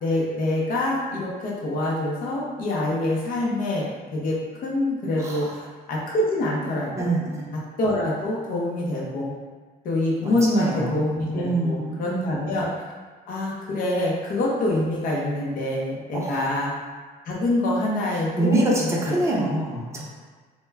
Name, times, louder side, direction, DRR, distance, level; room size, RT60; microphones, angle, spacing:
voice 1, 0.0-7.1 7.5-9.3 9.8-12.7 13.3-16.7 17.3-19.2, left 1 dB, 55° left, -4 dB, 0.6 m, -26 dB
voice 2, 7.0-7.6 10.2-11.0 11.3-12.2 16.1-16.3 18.4-20.0, right 2 dB, 15° right, -4 dB, 0.6 m, -25 dB
2.1 x 2.1 x 3.3 m, 1.4 s
cardioid pair, 110°, 17 cm